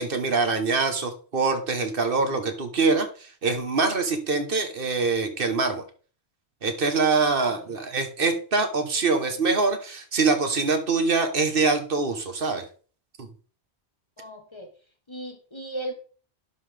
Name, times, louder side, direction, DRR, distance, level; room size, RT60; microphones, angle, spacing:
voice 1, 0.0-5.8 6.6-12.6 13.2-13.3, right 4 dB, 60° right, 7 dB, 1.3 m, -24 dB
voice 2, 7.1-7.7 14.2-14.7 15.1-15.9, right 1 dB, 25° left, 5 dB, 1.1 m, -37 dB
11.5 x 5.6 x 3.3 m, 0.40 s
omnidirectional pair, 1.1 m